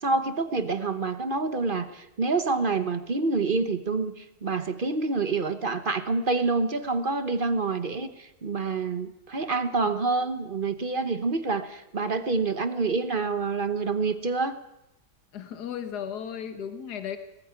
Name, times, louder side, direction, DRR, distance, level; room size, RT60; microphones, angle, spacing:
voice 1, 0.0-14.6, right 3 dB, 35° right, 10 dB, 1.1 m, -27 dB
voice 2, 15.3-17.2, left 8 dB, 70° left, 8 dB, 1.9 m, -35 dB
19.0 x 14.0 x 9.7 m, 0.91 s
omnidirectional pair, 1.8 m